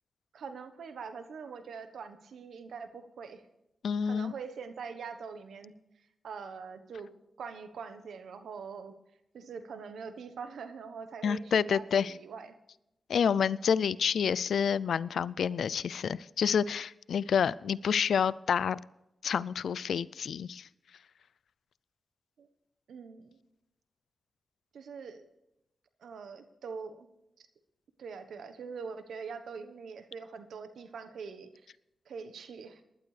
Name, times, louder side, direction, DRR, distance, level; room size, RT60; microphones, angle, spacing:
voice 1, 0.3-3.4 4.0-5.7 6.2-7.1 7.4-8.9 9.3-12.5 22.4-22.5 22.9-23.4 24.7-25.2 26.0-27.1 27.4-27.5 28.0-31.5 32.1-32.8, right 5 dB, 85° right, 9 dB, 1.1 m, -43 dB
voice 2, 3.8-4.3 11.2-12.1 13.1-18.8 19.2-20.7, left 7 dB, 85° left, 20 dB, 0.3 m, -28 dB
19.5 x 11.5 x 3.3 m, 0.87 s
cardioid pair, 50°, 0 cm